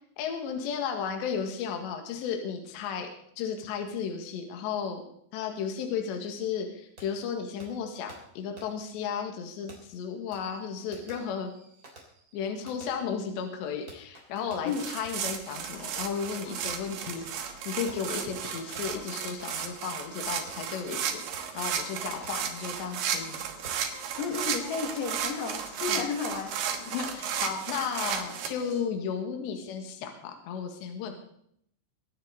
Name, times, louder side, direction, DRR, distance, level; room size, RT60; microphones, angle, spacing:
voice 1, 0.2-3.1 3.4-5.0 5.3-11.5 12.3-23.5 25.9-26.0 26.9-31.2, left 7 dB, 65° left, 3 dB, 3.6 m, -34 dB
Fireworks, 7.0-7.1 7.6-7.7 8.1-8.2 8.6-8.7 9.7-15.3 16.2-16.3 16.6-16.9 17.9-23.3 23.6-23.9, right 2 dB, 20° right, 2.9 m, -52 dB
sound 1, 14.7-28.5, right 8 dB, 80° right, 2.0 m, -34 dB
sound 2, 15.5-28.8, left 1 dB, 45° left, 8.2 m, -50 dB
voice 2, 24.2-26.5, left 5 dB, 90° left, 3 dB, 4.8 m, -32 dB
24.5 x 9.5 x 4.0 m, 0.69 s
omnidirectional pair, 5.9 m